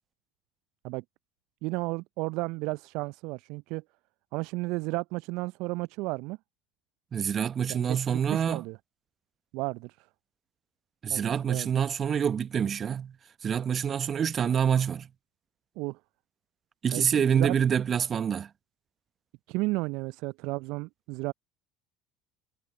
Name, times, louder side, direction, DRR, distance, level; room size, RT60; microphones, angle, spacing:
voice 1, 1.6-3.8 4.3-6.4 7.7-8.8 9.5-10.1 11.1-11.7 15.8-16.0 16.9-17.5 19.5-21.3, right 24 dB, 65° right, 0.5 m, -33 dB
voice 2, 7.1-8.6 11.0-13.2 13.4-15.1 16.8-18.5, right 8 dB, 40° right, 0.9 m, -26 dB
figure-of-eight pair, 65°, 0 cm